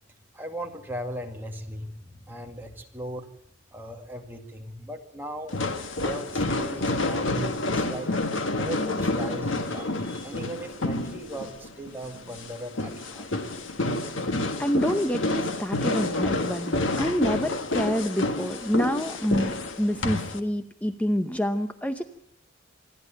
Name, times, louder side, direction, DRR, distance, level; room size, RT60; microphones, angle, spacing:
voice 1, 0.3-3.3 3.7-5.6 6.0-8.1 8.5-13.3, equal, 10° right, 2 dB, 2.1 m, -38 dB
sound 1, 5.5-20.4, left 2 dB, 75° left, 1.7 m, -29 dB
voice 2, 14.6-19.5 19.8-22.0, equal, 5° left, 8 dB, 0.8 m, -27 dB
27.0 x 11.0 x 9.2 m, 0.72 s
head